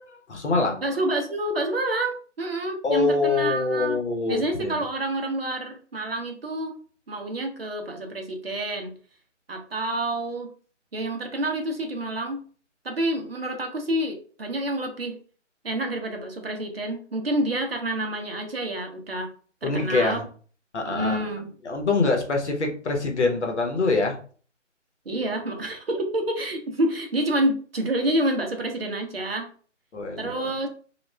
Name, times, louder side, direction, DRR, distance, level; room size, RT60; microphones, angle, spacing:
voice 1, 0.1-0.8 2.8-4.8 19.6-20.2 20.7-21.3 21.6-24.2 29.9-30.5, left 3 dB, 65° left, 2 dB, 0.9 m, -25 dB
voice 2, 0.8-4.0 4.3-6.8 7.1-8.9 9.5-10.5 10.9-12.4 12.8-15.2 15.6-19.3 19.6-20.2 20.8-21.5 25.1-29.5 30.2-30.7, right 1 dB, 50° right, 3 dB, 0.6 m, -28 dB
2.3 x 2.1 x 3.2 m, 0.42 s
figure-of-eight pair, 170°, 37 cm